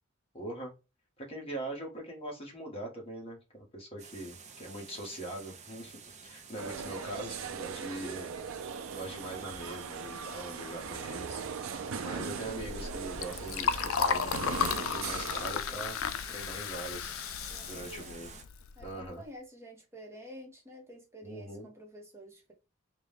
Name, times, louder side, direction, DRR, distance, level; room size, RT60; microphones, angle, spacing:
voice 1, 0.3-0.7 1.2-8.3 8.9-11.4 12.0-16.0 16.3-17.2 17.7-18.3 18.8-19.2 21.2-21.7, right 1 dB, 30° left, 1.4 m, -42 dB
sound 1, 4.0-18.4, right 5 dB, 35° right, 0.6 m, -52 dB
sound 2, 6.6-15.6, right 6 dB, 90° right, 0.5 m, -39 dB
voice 2, 7.9-8.2 17.5-18.2 18.8-22.5, equal, 15° right, 1.0 m, -49 dB
Liquid, 12.4-19.1, left 7 dB, 80° left, 0.4 m, -34 dB
3.6 x 2.3 x 3.4 m
head